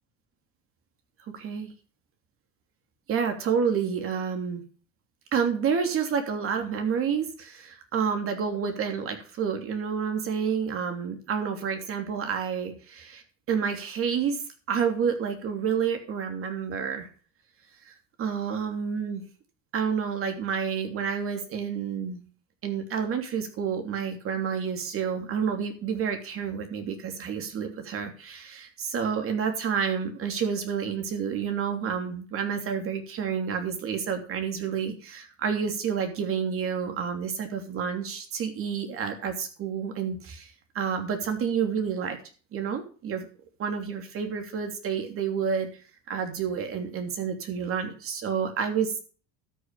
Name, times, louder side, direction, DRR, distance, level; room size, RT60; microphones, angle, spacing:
voice 1, 1.3-1.7 3.1-4.6 5.3-14.4 14.7-17.1 17.8-17.9 18.2-19.2 19.7-22.2 22.6-42.2 42.5-43.3 43.6-45.7 46.1-49.0, right 7 dB, 45° right, 5 dB, 3.1 m, -29 dB
13.0 x 6.5 x 6.9 m, 0.39 s
cardioid pair, 125°, 30 cm